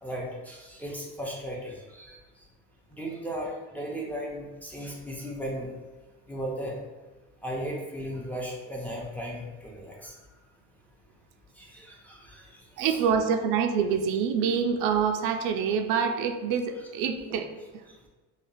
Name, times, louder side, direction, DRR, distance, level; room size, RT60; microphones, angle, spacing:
voice 1, 0.0-2.2 2.9-5.7 6.3-6.8 7.4-10.1 11.6-12.4 12.8-13.0, equal, 5° left, -3 dB, 0.5 m, -36 dB
voice 2, 12.8-17.5, right 6 dB, 70° right, 5 dB, 0.5 m, -26 dB
5.1 x 2.3 x 2.6 m, 1.2 s
cardioid pair, 135°, 33 cm